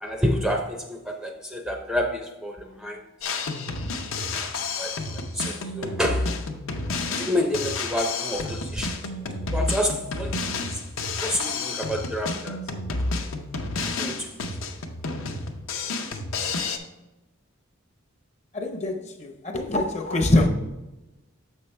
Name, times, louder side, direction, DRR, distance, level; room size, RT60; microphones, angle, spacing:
voice 1, 0.0-3.0 4.8-5.0 5.3-6.4 7.2-9.0 9.5-10.4 10.7-10.8 11.2-12.6 14.0-14.3, left 1 dB, 5° right, 0.5 m, -28 dB
Drum kit, 3.2-16.8, left 3 dB, 70° left, 0.7 m, -30 dB
voice 2, 18.5-20.5, left 1 dB, 35° left, 0.7 m, -24 dB
6.8 x 5.5 x 3.3 m
head